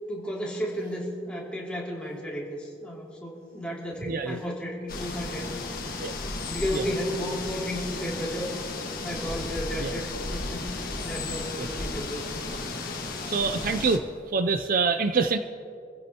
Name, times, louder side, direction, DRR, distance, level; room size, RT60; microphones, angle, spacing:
voice 1, 0.1-6.1 6.5-8.5 8.9-12.2 12.5-13.0, equal, 5° left, -5 dB, 2.8 m, -34 dB
voice 2, 4.0-4.4 6.0-6.1 6.7-6.8 9.8-9.9 11.6-11.7 13.3-14.0 14.3-15.4, right 4 dB, 50° right, 9 dB, 0.5 m, -25 dB
sound 1, 4.9-14.0, left 3 dB, 50° left, 1.6 m, -34 dB
27.0 x 15.5 x 3.0 m, 2.4 s
head